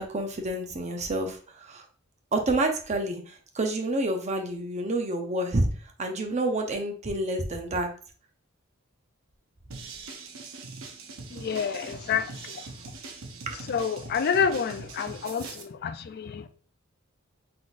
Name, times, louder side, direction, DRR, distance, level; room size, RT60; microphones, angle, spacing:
voice 1, 0.0-1.8 2.3-5.7 6.0-7.9 13.5-13.6, right 2 dB, 35° right, 0.7 m, -28 dB
sound 1, 9.7-15.6, right 3 dB, 70° right, 0.7 m, -42 dB
voice 2, 11.3-12.6 13.7-16.4, left 7 dB, 50° left, 0.4 m, -28 dB
4.0 x 3.7 x 2.5 m
head